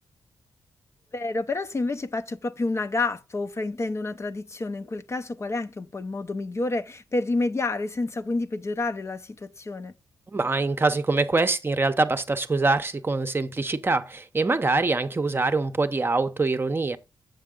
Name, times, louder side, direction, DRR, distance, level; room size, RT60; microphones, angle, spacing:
voice 1, 1.1-9.9, left 3 dB, 35° left, 0.6 m, -29 dB
voice 2, 10.3-17.0, right 3 dB, 30° right, 0.7 m, -24 dB
7.3 x 6.8 x 3.7 m
cardioid pair, 65°, 8 cm